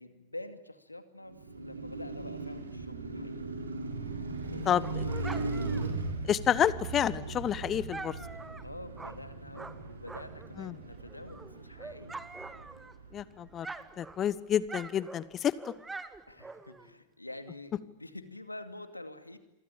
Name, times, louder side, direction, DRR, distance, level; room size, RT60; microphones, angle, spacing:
voice 1, 0.0-3.4 4.4-5.0 8.6-12.2 13.9-14.0 16.3-19.4, left 1 dB, 85° left, 9 dB, 2.4 m, -47 dB
Car passing by, 1.2-13.5, right 3 dB, 75° right, 4.4 m, -38 dB
Dog, 4.3-10.6 10.9-13.2 13.5-16.9, right 3 dB, 10° right, 1.7 m, -46 dB
voice 2, 4.7-5.0 6.3-8.1 10.6-10.7 13.1-13.7 14.0-15.5, left 9 dB, 25° left, 18 dB, 1.1 m, -29 dB
27.5 x 24.5 x 8.7 m, 0.88 s
figure-of-eight pair, 90°, 0 cm